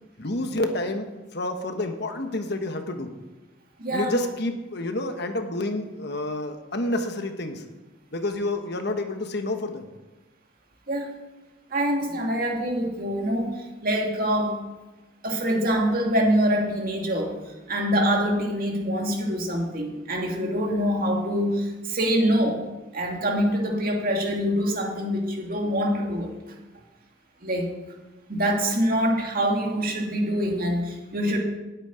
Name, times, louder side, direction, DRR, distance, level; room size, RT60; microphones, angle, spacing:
voice 1, 0.2-1.1 1.3-3.1 3.9-7.6 8.1-9.9, left 1 dB, 60° left, 6 dB, 1.2 m, -29 dB
voice 2, 3.8-4.1 10.9-11.1 11.7-14.6 15.2-17.4 17.7-22.6 22.9-26.3 27.4-27.7 28.3-31.4, equal, 50° right, 0 dB, 2.4 m, -25 dB
8.7 x 8.3 x 9.4 m, 1.1 s
head